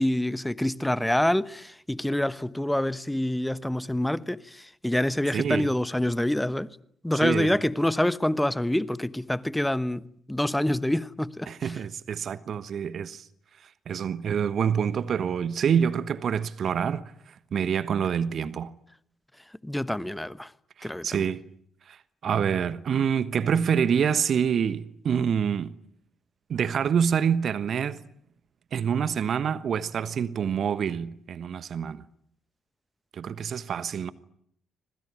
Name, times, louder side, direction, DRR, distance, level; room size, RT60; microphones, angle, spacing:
voice 1, 0.0-6.7 7.0-11.7 19.6-20.5 20.8-21.3, left 1 dB, 5° left, 1.2 m, -26 dB
voice 2, 5.3-5.7 7.2-7.6 11.5-13.3 13.9-17.1 17.5-18.7 20.8-21.4 21.9-22.0 22.2-25.7 26.5-28.0 28.7-32.0 33.1-34.1, right 7 dB, 50° right, 1.2 m, -26 dB
26.0 x 21.5 x 9.8 m
figure-of-eight pair, 45°, 0 cm